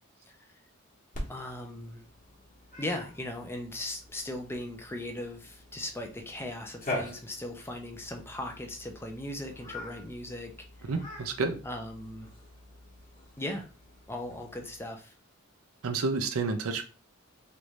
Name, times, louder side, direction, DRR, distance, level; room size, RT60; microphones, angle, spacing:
Cat, 1.1-14.8, left 1 dB, 40° left, 1.1 m, -44 dB
voice 1, 1.3-2.0 2.8-10.5 10.8-10.9 11.6-12.3 13.4-13.7 14.1-15.1, left 1 dB, 10° left, 3 dB, 0.5 m, -38 dB
voice 2, 10.9-11.6 15.8-16.8, right 4 dB, 75° right, 7 dB, 0.5 m, -30 dB
3.2 x 2.6 x 3.1 m, 0.34 s
head